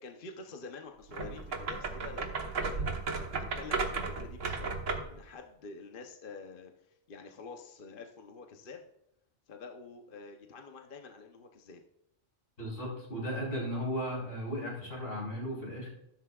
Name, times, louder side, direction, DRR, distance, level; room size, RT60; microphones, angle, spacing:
voice 1, 0.0-2.9 3.3-8.8 9.5-11.8, left 4 dB, 50° left, 3 dB, 1.0 m, -48 dB
sound 1, 1.1-5.2, right 4 dB, 90° right, 1.6 m, -34 dB
voice 2, 12.6-15.9, equal, 80° left, -3 dB, 4.6 m, -36 dB
13.0 x 12.0 x 2.4 m, 0.83 s
omnidirectional pair, 1.3 m